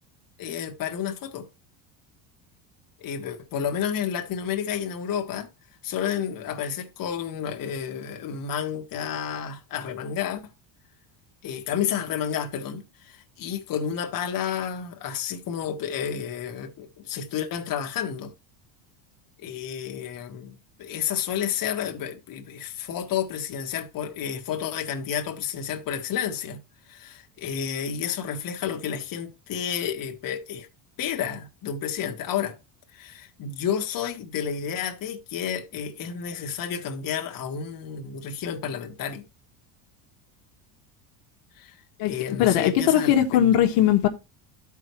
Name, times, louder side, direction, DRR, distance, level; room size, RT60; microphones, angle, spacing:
voice 1, 0.4-1.5 3.0-5.5 5.8-10.4 11.4-18.3 19.4-26.6 26.9-30.7 31.0-32.6 32.9-39.2 41.5-43.4, left 8 dB, 40° left, 1.4 m, -31 dB
voice 2, 42.4-44.1, left 11 dB, 75° left, 1.4 m, -19 dB
13.5 x 4.8 x 3.0 m
cardioid pair, 125°, 49 cm